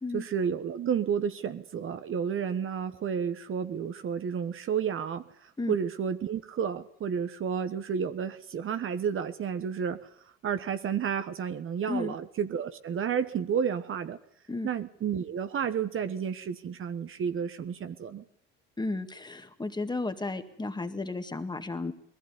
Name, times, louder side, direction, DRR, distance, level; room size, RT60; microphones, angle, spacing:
voice 1, 0.1-5.2 5.7-10.0 10.4-14.2 14.6-18.2, right 7 dB, 45° right, 10 dB, 1.3 m, -31 dB
voice 2, 18.8-21.9, left 3 dB, 15° left, 8 dB, 2.0 m, -33 dB
20.5 x 15.5 x 9.7 m, 0.72 s
supercardioid pair, 85°, 30 cm